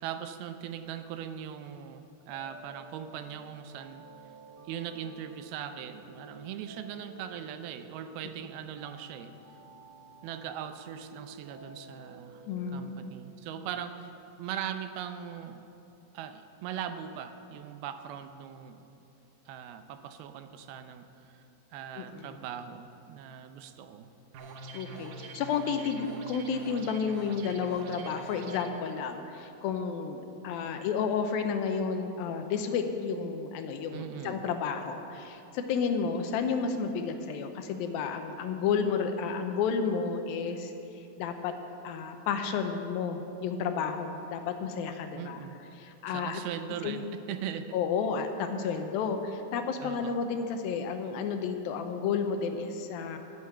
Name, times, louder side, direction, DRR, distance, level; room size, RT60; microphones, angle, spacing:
voice 1, 0.0-4.0 4.7-9.3 10.2-12.4 12.7-14.1 14.4-15.6 16.1-18.9 19.5-21.4 21.7-24.1 33.9-34.5 45.1-45.6 46.1-47.8 49.8-50.2, right 9 dB, 90° right, 9 dB, 2.6 m, -40 dB
sound 1, 2.3-13.1, right 2 dB, 40° right, 1.7 m, -52 dB
voice 2, 12.5-13.1 22.0-22.3 24.7-41.5 41.8-45.4 45.8-46.4 46.8-47.1 47.7-53.2, left 6 dB, 80° left, 6 dB, 2.5 m, -31 dB
sound 2, 24.3-28.7, right 3 dB, 70° right, 2.2 m, -45 dB
11.5 x 9.5 x 7.7 m, 2.8 s
omnidirectional pair, 4.3 m